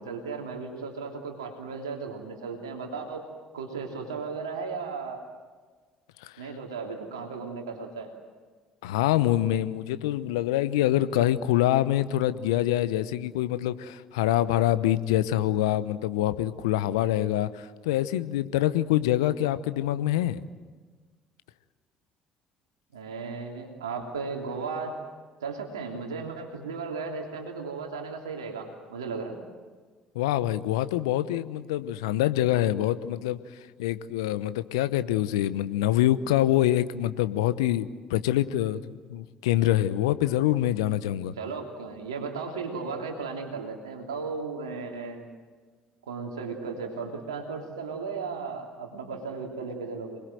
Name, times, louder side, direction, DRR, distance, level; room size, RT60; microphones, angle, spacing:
voice 1, 0.0-3.3 3.5-5.2 6.4-8.1 22.9-25.0 25.4-29.4 41.4-45.3 46.1-50.2, right 4 dB, 80° right, 2 dB, 3.1 m, -35 dB
voice 2, 8.8-20.4 30.1-33.4 33.8-41.3, left 13 dB, 75° left, 13 dB, 1.0 m, -25 dB
28.0 x 21.0 x 7.9 m, 1.5 s
hypercardioid pair, 55°, 3 cm